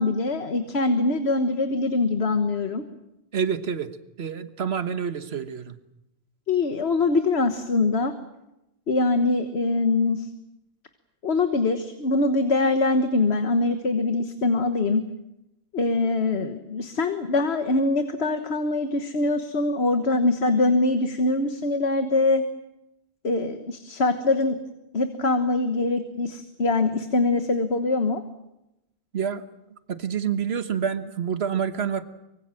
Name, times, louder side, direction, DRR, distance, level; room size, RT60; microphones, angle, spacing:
voice 1, 0.0-2.8 6.5-8.1 8.9-10.3 11.2-15.0 15.7-22.4 23.2-24.6 24.9-28.2, left 3 dB, 85° left, 7 dB, 1.6 m, -23 dB
voice 2, 3.3-3.9 4.2-5.8 29.1-29.4 29.9-32.0, right 7 dB, 80° right, 10 dB, 1.5 m, -27 dB
25.0 x 23.5 x 7.6 m, 0.90 s
omnidirectional pair, 1.1 m